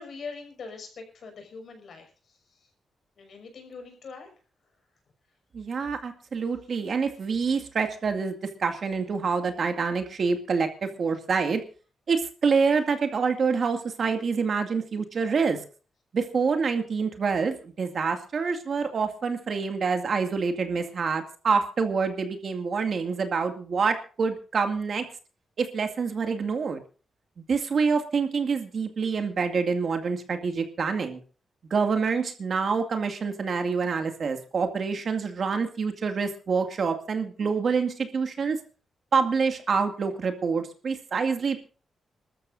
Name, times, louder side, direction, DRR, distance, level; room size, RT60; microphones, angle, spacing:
voice 1, 0.0-2.1 3.2-4.3, left 4 dB, 60° left, 5 dB, 5.8 m, -42 dB
voice 2, 5.5-11.6 12.1-15.6 16.1-25.1 25.6-26.8 27.4-31.2 31.7-38.6 39.1-41.6, right 5 dB, 50° right, 6 dB, 2.2 m, -26 dB
26.5 x 13.5 x 2.7 m, 0.38 s
wide cardioid pair, 135°, 0 cm